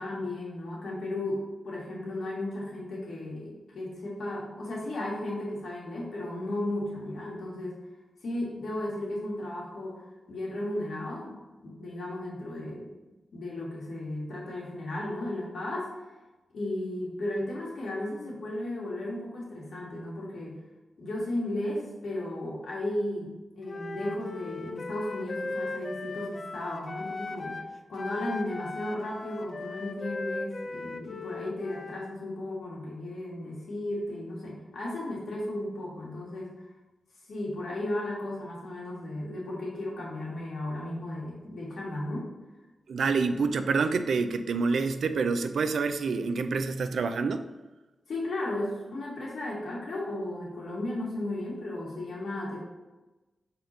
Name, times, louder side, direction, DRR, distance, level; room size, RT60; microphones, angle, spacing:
voice 1, 0.0-7.8 8.2-12.9 13.3-15.9 16.5-20.6 21.0-27.6 27.9-36.5 37.3-42.3 48.1-52.6, left 1 dB, 70° left, -4 dB, 1.9 m, -35 dB
Wind instrument woodwind instrument, 23.7-27.7 28.0-32.2, left 3 dB, 40° left, 0.5 m, -38 dB
voice 2, 42.9-47.4, right 4 dB, 75° right, 9 dB, 0.4 m, -27 dB
6.4 x 4.1 x 4.3 m, 1.1 s
wide cardioid pair, 145°, 0 cm